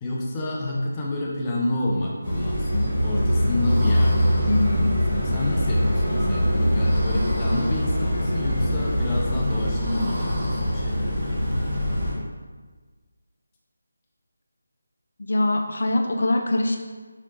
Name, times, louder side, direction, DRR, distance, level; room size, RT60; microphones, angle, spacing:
voice 1, 0.0-11.7, left 1 dB, 15° left, -3 dB, 0.6 m, -29 dB
sound 1, 2.2-12.1, equal, 25° right, 1.5 m, -23 dB
voice 2, 4.5-4.9 15.2-16.8, left 1 dB, 65° left, 4 dB, 0.4 m, -23 dB
4.9 x 3.1 x 2.9 m, 1.4 s
figure-of-eight pair, 165°, 0 cm